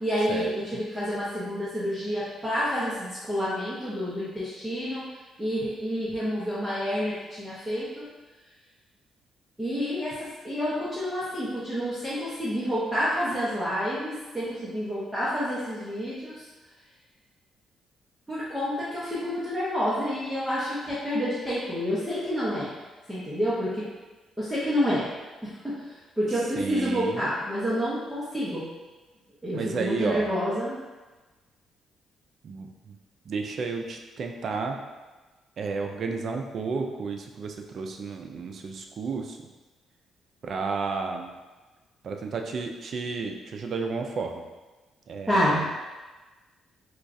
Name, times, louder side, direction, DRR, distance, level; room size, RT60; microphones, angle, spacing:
voice 1, 0.0-5.1 5.4-8.1 9.6-16.4 18.3-22.7 23.1-23.9 24.4-25.1 25.4-25.9 26.2-28.6 29.4-30.8 45.3-45.6, equal, 5° right, -10 dB, 0.9 m, -28 dB
voice 2, 26.6-27.2 29.5-30.3 32.4-33.0 33.3-34.8 35.6-39.4 40.4-41.3 42.0-44.4 45.1-45.6, right 4 dB, 55° right, 4 dB, 0.4 m, -32 dB
4.4 x 2.3 x 2.6 m, 1.2 s
cardioid pair, 90°, 0 cm